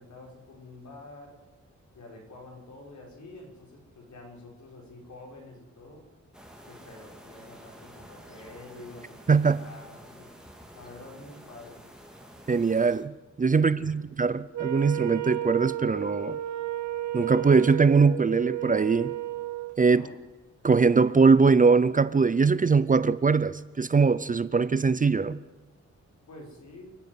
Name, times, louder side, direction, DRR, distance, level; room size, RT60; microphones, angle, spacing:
voice 1, 0.0-1.4 1.9-6.1 6.7-10.3 10.7-11.8 13.5-14.0 19.8-20.2 26.3-26.9, left 2 dB, 70° left, 5.9 m, -47 dB
sound 1, 6.3-13.1, equal, ahead, 2.4 m, -50 dB
voice 2, 9.3-9.6 12.5-16.4 17.1-19.1 19.8-20.1 20.6-25.4, right 4 dB, 30° right, 0.5 m, -22 dB
Wind instrument woodwind instrument, 14.5-19.8, right 14 dB, 75° right, 0.8 m, -33 dB
28.5 x 9.6 x 9.7 m
wide cardioid pair, 165°, 29 cm